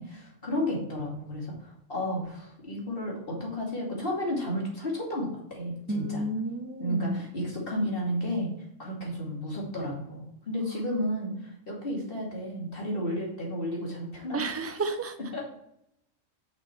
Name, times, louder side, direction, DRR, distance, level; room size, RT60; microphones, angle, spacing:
voice 1, 0.0-6.2 6.8-8.5 8.8-14.5 15.3-15.4, equal, 45° left, -3 dB, 2.7 m, -32 dB
voice 2, 5.9-7.2 10.6-11.0 14.3-15.1, right 2 dB, 20° right, 7 dB, 0.4 m, -32 dB
6.4 x 6.1 x 4.4 m, 0.77 s
omnidirectional pair, 1.3 m